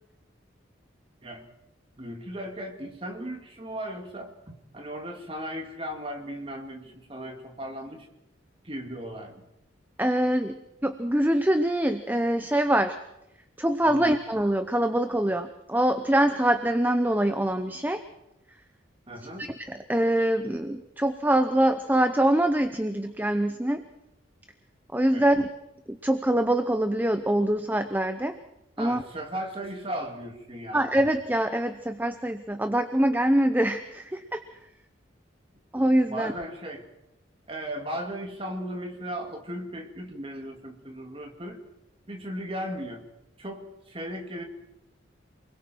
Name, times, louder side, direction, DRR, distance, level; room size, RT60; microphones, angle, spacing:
voice 1, 2.0-8.1 8.6-9.4 13.8-14.1 19.1-19.5 25.1-25.3 28.8-30.8 36.1-36.8 37.5-41.6 42.1-43.1 43.4-44.4, equal, 30° right, 4 dB, 2.4 m, -36 dB
voice 2, 10.0-13.0 13.6-18.0 19.4-23.8 24.9-25.5 25.9-28.4 28.8-29.0 30.7-34.4 35.7-36.3, right 1 dB, 10° right, 8 dB, 0.7 m, -24 dB
28.5 x 21.0 x 4.6 m, 0.87 s
head